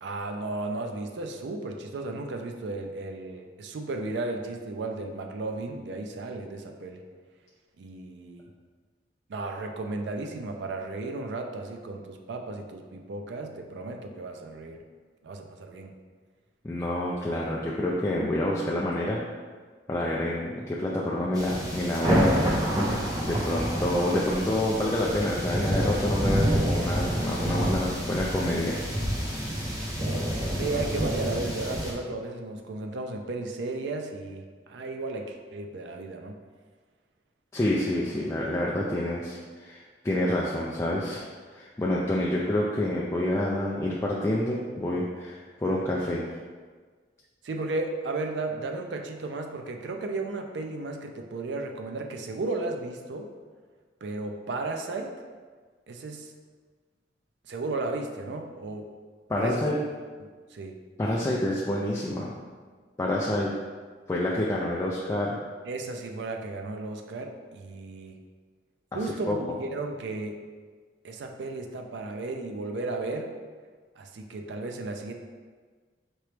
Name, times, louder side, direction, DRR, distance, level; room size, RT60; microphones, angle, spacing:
voice 1, 0.0-7.0 7.8-8.5 9.3-14.8 15.2-15.9 30.5-36.3 47.4-53.3 54.0-55.1 55.9-56.3 57.5-58.9 59.4-59.7 60.2-60.8 65.6-68.2 68.9-70.4 71.0-73.3 74.0-75.1, right 2 dB, 80° right, 4 dB, 0.4 m, -34 dB
voice 2, 16.6-19.2 19.9-22.3 23.2-28.8 37.5-41.2 41.5-46.3 59.3-59.8 61.0-62.3 63.0-63.6 64.1-65.4 69.3-69.4, left 1 dB, 15° left, -5 dB, 0.3 m, -28 dB
sound 1, 21.3-31.9, equal, 20° right, 0.6 m, -28 dB
4.5 x 2.9 x 3.2 m, 1.5 s
head